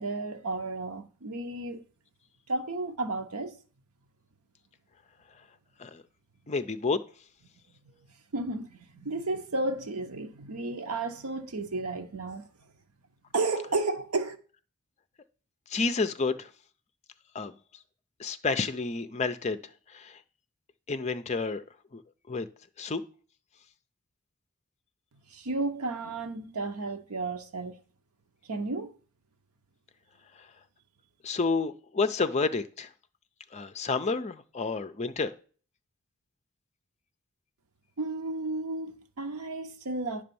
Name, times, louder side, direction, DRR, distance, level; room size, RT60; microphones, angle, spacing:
voice 1, 0.0-1.8 2.5-3.6 8.3-12.5 13.3-14.4 25.3-27.8 28.5-28.9 38.0-40.2, right 2 dB, 80° right, 0.9 m, -33 dB
voice 2, 6.5-7.0 15.7-16.5 17.3-17.5 18.2-19.6 19.9-20.1 20.9-21.6 21.9-22.0 22.3-22.5 22.8-23.0 31.2-32.9 33.5-35.3, left 4 dB, 30° left, 0.5 m, -29 dB
9.8 x 3.4 x 6.9 m
head